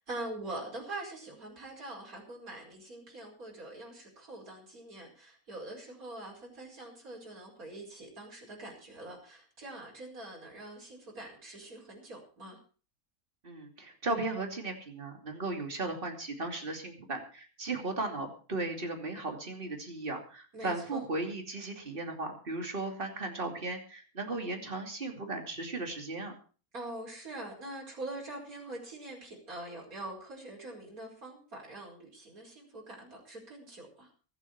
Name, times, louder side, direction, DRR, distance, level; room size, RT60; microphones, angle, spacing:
voice 1, 0.0-12.6 20.5-21.0 26.7-34.1, right 2 dB, 70° right, -1 dB, 5.5 m, -44 dB
voice 2, 13.4-26.3, right 2 dB, 35° right, 4 dB, 2.9 m, -36 dB
23.0 x 8.3 x 4.7 m, 0.38 s
omnidirectional pair, 1.5 m